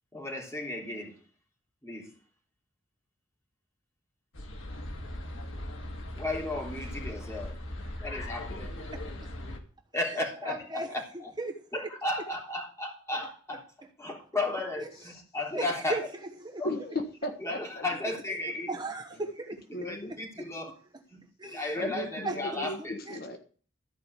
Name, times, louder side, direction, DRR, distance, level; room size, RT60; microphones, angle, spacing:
voice 1, 0.1-1.2 1.8-2.1 6.2-7.6 8.0-8.7 9.9-11.3 11.7-13.6 14.0-16.0 16.6-16.7 17.4-18.7 19.7-20.7 21.1-23.0, left 2 dB, 15° left, 0 dB, 3.4 m, -34 dB
sound 1, 4.3-9.6, left 1 dB, 85° left, 2.0 m, -39 dB
voice 2, 9.9-10.9 11.4-11.6 14.8-14.9 15.5-16.0 16.4-16.6 18.7-19.6 21.4-21.9 22.2-22.4 23.1-23.2, right 2 dB, 20° right, 3 dB, 1.1 m, -36 dB
voice 3, 16.6-17.8 19.7-20.1 21.7-23.4, left 1 dB, 50° left, 5 dB, 1.5 m, -36 dB
13.5 x 5.3 x 8.2 m, 0.41 s
head